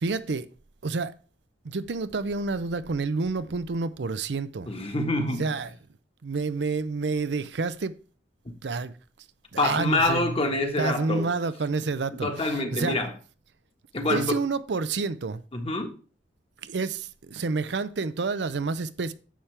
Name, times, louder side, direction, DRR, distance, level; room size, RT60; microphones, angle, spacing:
voice 1, 0.0-0.5 0.8-1.1 1.6-4.7 5.4-5.7 6.2-7.9 8.6-8.9 9.5-10.5 10.8-13.0 14.1-15.4 16.6-19.1, right 4 dB, 70° right, 0.6 m, -29 dB
voice 2, 4.7-5.6 8.4-8.5 9.6-11.3 12.1-13.1 13.9-14.3 15.5-15.9, left 2 dB, 35° left, 1.5 m, -26 dB
10.0 x 7.3 x 3.4 m
head